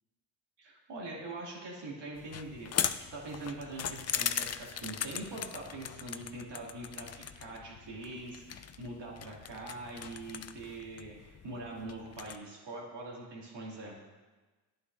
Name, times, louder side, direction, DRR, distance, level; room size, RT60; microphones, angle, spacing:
voice 1, 0.6-14.0, right 2 dB, 65° right, -4 dB, 2.6 m, -43 dB
sound 1, 2.2-12.4, left 9 dB, 35° left, 0.4 m, -39 dB
9.7 x 9.3 x 2.6 m, 1.3 s
supercardioid pair, 60°, 46 cm